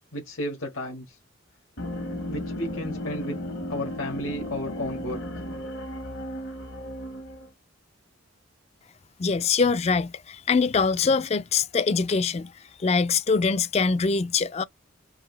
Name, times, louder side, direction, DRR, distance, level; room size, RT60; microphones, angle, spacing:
voice 1, 0.1-1.2 2.3-3.4 3.7-5.2, left 1 dB, 85° left, 1.6 m, -33 dB
sound 1, 1.8-7.5, left 1 dB, 60° left, 1.0 m, -35 dB
voice 2, 9.2-12.5 12.8-14.6, left 5 dB, 30° left, 0.3 m, -23 dB
4.7 x 2.5 x 3.2 m
head